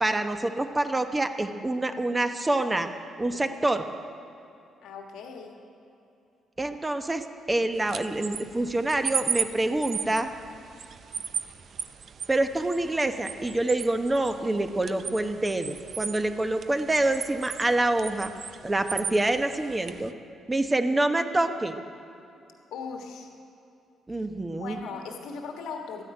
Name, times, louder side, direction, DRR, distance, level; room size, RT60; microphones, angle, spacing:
voice 1, 0.0-2.9 3.2-3.9 6.6-10.3 12.3-18.3 18.6-20.1 20.5-21.8 24.1-24.8, right 2 dB, 20° right, 7 dB, 1.0 m, -26 dB
voice 2, 4.8-5.5 22.7-23.3 24.2-24.3 24.6-26.0, left 5 dB, 85° left, 3 dB, 1.4 m, -38 dB
sound 1, 7.7-20.1, right 7 dB, 55° right, 0.5 m, -36 dB
13.0 x 10.0 x 9.0 m, 2.7 s
cardioid pair, 90°, 0 cm